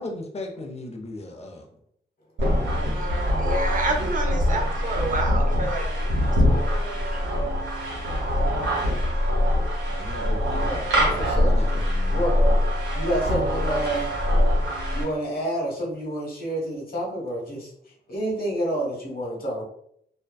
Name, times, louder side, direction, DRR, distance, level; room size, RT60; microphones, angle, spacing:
voice 1, 0.0-1.7 2.4-3.0 9.9-12.3, left 2 dB, 35° left, 2 dB, 0.6 m, -37 dB
sound 1, 2.4-15.0, left 1 dB, 80° right, 0.9 m, -23 dB
voice 2, 2.9-6.3 6.5-7.5, right 2 dB, 45° right, 2 dB, 0.7 m, -30 dB
voice 3, 10.6-11.5 12.1-12.5 12.9-14.1 14.9-17.7 18.1-19.6, right 1 dB, 55° left, -2 dB, 1.1 m, -29 dB
2.5 x 2.2 x 2.2 m, 0.70 s
cardioid pair, 50°, 18 cm